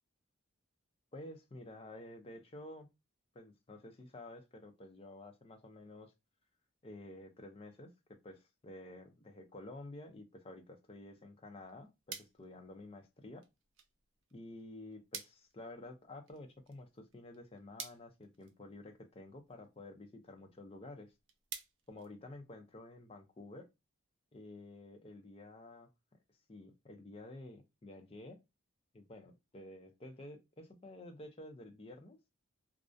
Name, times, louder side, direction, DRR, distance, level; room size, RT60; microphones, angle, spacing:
voice 1, 1.1-2.9 3.3-6.1 6.8-13.4 14.3-21.1 21.9-23.7 24.3-25.9 26.5-28.4 28.9-32.2, left 2 dB, 25° left, 5 dB, 0.4 m, -51 dB
sound 1, 11.5-22.8, right 7 dB, 65° right, 0.4 m, -54 dB
2.4 x 2.0 x 2.5 m, 0.23 s
head